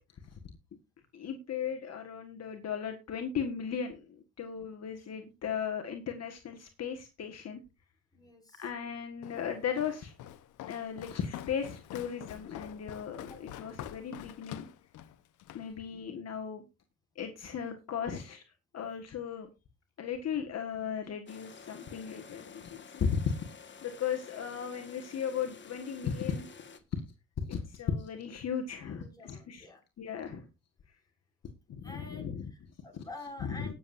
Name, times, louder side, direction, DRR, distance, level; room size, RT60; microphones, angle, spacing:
voice 1, 1.1-7.6 8.6-10.1 10.7-14.7 15.5-16.6 17.1-18.4 18.7-19.5 20.0-23.2 23.8-26.5 27.5-29.7 30.0-30.5 31.7-32.5 33.4-33.7, left 7 dB, 55° left, 5 dB, 1.6 m, -36 dB
voice 2, 8.1-8.7 13.3-13.4 29.0-29.8 31.8-33.7, left 2 dB, 10° left, 0 dB, 6.0 m, -48 dB
Walk footsteps, 9.2-15.7, left 12 dB, 85° left, 1.0 m, -46 dB
sound 1, 21.3-26.8, left 5 dB, 40° left, 1.6 m, -51 dB
19.5 x 7.4 x 2.6 m, 0.27 s
cardioid pair, 90°, 30 cm